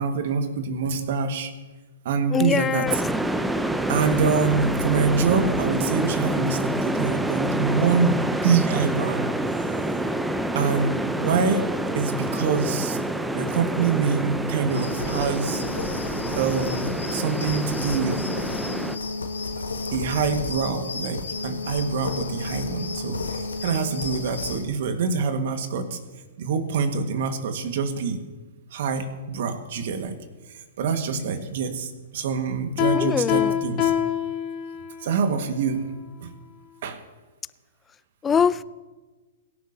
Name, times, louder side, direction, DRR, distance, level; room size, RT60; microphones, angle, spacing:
voice 1, 0.0-1.5 2.1-3.0 3.9-9.3 10.5-11.6 11.9-13.0 13.3-15.6 16.4-18.2 19.9-26.0 26.4-28.2 28.7-30.1 30.8-33.9 35.0-35.8 36.2-36.3 36.8-37.0, right 5 dB, 55° right, 6 dB, 1.8 m, -25 dB
voice 2, 2.3-2.9 32.9-33.5 38.2-38.6, left 7 dB, 15° left, 19 dB, 0.4 m, -23 dB
sound 1, 2.9-19.0, right 1 dB, 5° right, 0.7 m, -27 dB
sound 2, 14.7-24.7, left 3 dB, 80° left, 1.8 m, -32 dB
Piano, 32.8-35.1, left 10 dB, 35° left, 2.1 m, -25 dB
23.0 x 11.0 x 2.9 m, 1.3 s
figure-of-eight pair, 115°, 0 cm